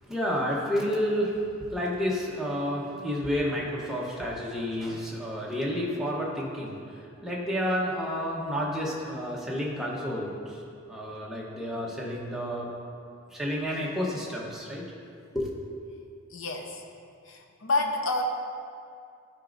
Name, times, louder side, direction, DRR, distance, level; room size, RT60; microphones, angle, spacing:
voice 1, 0.1-1.4 1.7-6.8 7.2-12.7 13.3-14.8 15.3-15.8, equal, ahead, -5 dB, 0.9 m, -30 dB
voice 2, 16.3-16.8 17.3-18.2, left 3 dB, 65° left, 2 dB, 0.8 m, -29 dB
12.0 x 5.0 x 2.6 m, 2.4 s
head